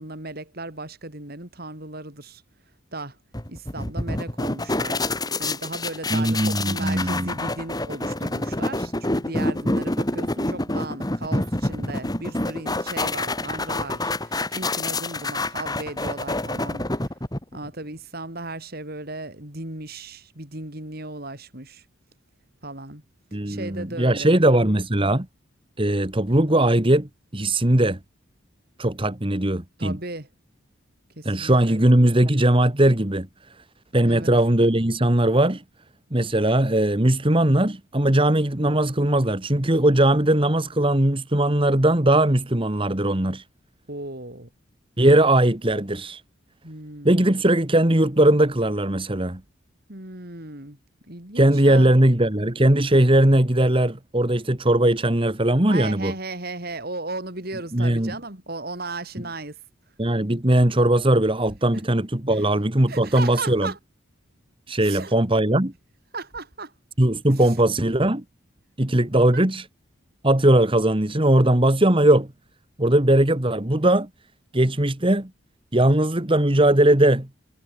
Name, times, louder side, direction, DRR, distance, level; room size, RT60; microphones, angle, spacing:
voice 1, 0.0-2.4 2.9-3.2 3.5-5.1 5.4-17.1 17.5-21.8 22.6-23.0 23.5-24.4 29.8-30.3 31.2-31.8 34.0-34.3 43.9-44.5 46.6-47.3 49.9-50.8 51.1-51.9 55.7-59.6 61.7-61.8 62.9-63.8 64.8-65.2 66.1-66.7 67.4-67.5 69.3-69.4, right 2 dB, 50° right, 4.5 m, -36 dB
sound 1, 3.3-17.7, left 2 dB, 20° left, 2.7 m, -27 dB
voice 2, 6.1-7.3 23.3-25.3 25.8-28.0 28.8-30.0 31.2-33.3 33.6-33.7 33.9-35.6 36.1-43.4 45.0-46.2 47.0-49.4 51.4-56.1 57.7-58.2 60.0-63.7 64.7-65.7 67.0-68.2 68.8-69.7 70.2-72.3 72.8-74.1 74.5-75.3 75.7-77.3, right 1 dB, 25° right, 1.7 m, -19 dB
head